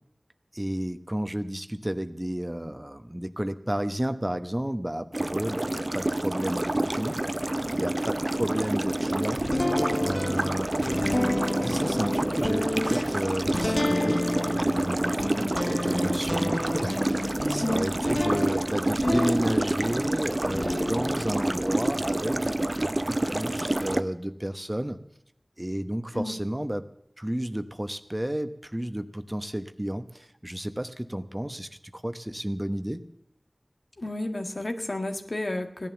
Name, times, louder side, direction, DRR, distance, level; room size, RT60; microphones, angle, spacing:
voice 1, 0.5-7.2 7.6-9.4 10.0-11.4 11.6-14.2 14.7-25.0 25.6-26.9 27.2-33.0, right 1 dB, 20° right, 10 dB, 1.0 m, -32 dB
sound 1, 5.1-24.0, right 1 dB, 45° right, 0.7 m, -28 dB
sound 2, 9.4-20.0 20.4-22.8, left 1 dB, 50° left, 0.8 m, -31 dB
voice 2, 17.6-18.3 26.1-26.4 34.0-35.9, left 1 dB, 75° left, 5 dB, 1.8 m, -32 dB
16.5 x 11.0 x 7.1 m, 0.77 s
wide cardioid pair, 40°, 0 cm